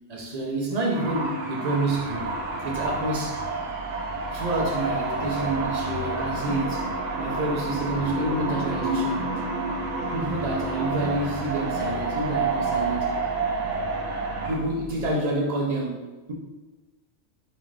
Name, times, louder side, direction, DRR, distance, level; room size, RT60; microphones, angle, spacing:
voice 1, 0.0-2.3 2.6-3.4 4.3-6.9 7.2-9.3 10.1-13.2 14.4-16.3, right 2 dB, 55° right, -1 dB, 0.4 m, -28 dB
sound 1, 0.9-14.6, right 3 dB, 70° right, 0.9 m, -29 dB
sound 2, 1.9-15.1, right 1 dB, 45° left, 1.0 m, -42 dB
4.1 x 2.5 x 3.1 m, 1.2 s
omnidirectional pair, 1.4 m